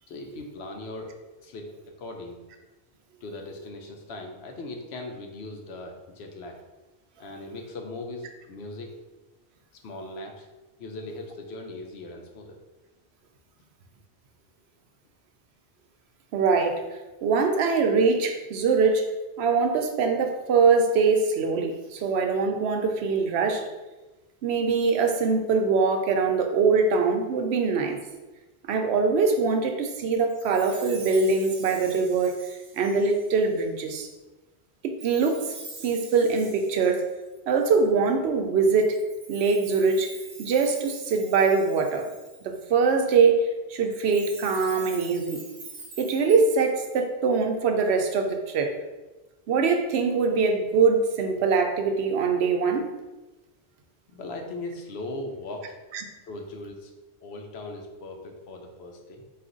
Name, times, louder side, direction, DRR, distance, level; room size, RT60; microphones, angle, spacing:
voice 1, 0.1-1.1 1.4-1.7 2.0-2.4 3.2-6.6 7.2-8.9 9.8-10.4 10.8-12.6 54.1-55.7 56.3-56.9 57.2-59.2, left 2 dB, 75° left, 3 dB, 0.9 m, -39 dB
voice 2, 16.3-16.8 17.2-19.0 19.4-23.7 24.4-28.0 28.7-34.1 34.8-35.5 35.8-37.0 37.5-39.0 39.3-40.1 40.4-42.1 42.4-45.4 46.0-48.8 49.5-52.9 55.9-56.0, right 4 dB, 80° right, 4 dB, 0.8 m, -23 dB
Chime, 30.3-33.6 35.0-37.8 38.8-42.6 43.9-47.0, right 3 dB, 50° right, 0.7 m, -45 dB
4.2 x 2.4 x 3.8 m, 1.1 s
omnidirectional pair, 1.1 m